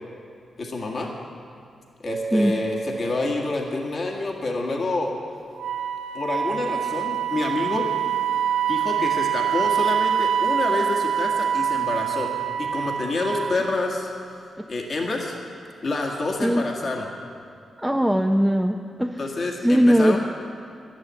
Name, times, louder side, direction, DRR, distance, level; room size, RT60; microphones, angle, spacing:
voice 1, 0.6-1.1 2.0-5.1 6.1-7.9 8.7-12.3 12.6-14.1 14.7-15.3 15.8-17.1 19.2-20.2, left 2 dB, 55° left, 0 dB, 1.8 m, -28 dB
Mallet percussion, 2.1-5.1, right 3 dB, 40° right, 0.9 m, -34 dB
Wind instrument woodwind instrument, 5.6-13.8, right 8 dB, 65° right, 0.5 m, -25 dB
voice 2, 17.8-19.3 19.6-20.2, equal, 5° right, 2 dB, 0.6 m, -20 dB
11.0 x 10.0 x 7.6 m, 2.5 s
cardioid pair, 60°, 0 cm